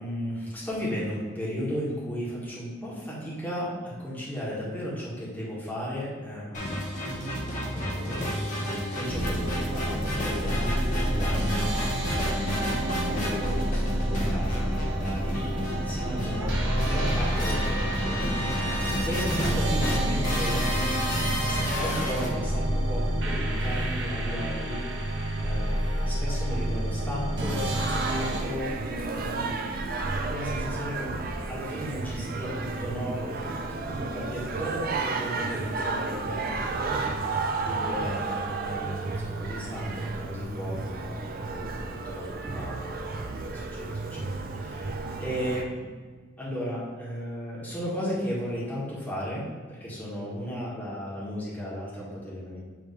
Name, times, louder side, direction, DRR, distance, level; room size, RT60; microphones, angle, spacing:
voice 1, 0.0-8.6 8.9-11.7 12.1-18.8 19.0-24.8 25.4-28.7 29.2-31.2 31.5-33.4 33.7-43.3 43.5-45.9 46.4-52.6, equal, 10° left, -8 dB, 1.8 m, -35 dB
sound 1, 6.5-22.3, equal, 40° left, 1.2 m, -31 dB
sound 2, 9.0-28.4, right 1 dB, 65° right, 1.1 m, -29 dB
Singing, 27.4-45.6, right 3 dB, 50° right, 0.5 m, -32 dB
9.2 x 3.2 x 3.3 m, 1.5 s
head